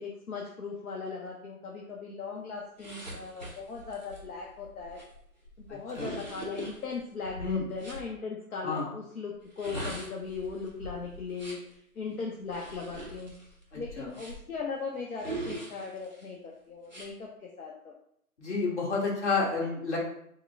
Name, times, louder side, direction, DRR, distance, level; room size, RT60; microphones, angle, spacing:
voice 1, 0.0-5.0 5.6-13.3 13.7-17.9, left 4 dB, 65° left, -1 dB, 0.7 m, -38 dB
sound 1, 2.8-8.0 9.4-11.7 12.5-14.6 15.2-16.2 16.8-17.1, right 1 dB, 30° right, 0.5 m, -42 dB
voice 2, 13.7-14.1 18.4-20.0, left 4 dB, 50° left, -4 dB, 1.3 m, -30 dB
3.6 x 2.1 x 3.3 m, 0.70 s
figure-of-eight pair, 160°, 46 cm